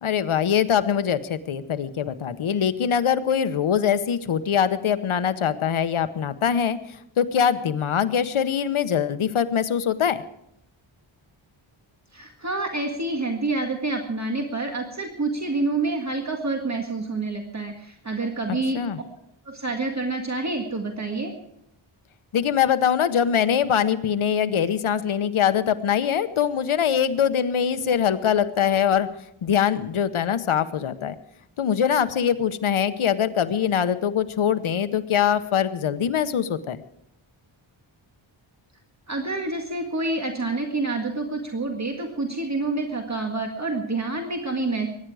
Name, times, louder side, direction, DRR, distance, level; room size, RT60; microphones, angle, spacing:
voice 1, 0.0-10.2 18.7-19.0 22.3-29.1 29.4-31.2 31.6-36.8, left 8 dB, 75° left, 11 dB, 1.0 m, -23 dB
voice 2, 12.1-18.8 19.5-21.3 39.1-44.9, right 3 dB, 35° right, 3 dB, 1.9 m, -28 dB
22.5 x 10.5 x 4.8 m, 0.79 s
wide cardioid pair, 100°, 49 cm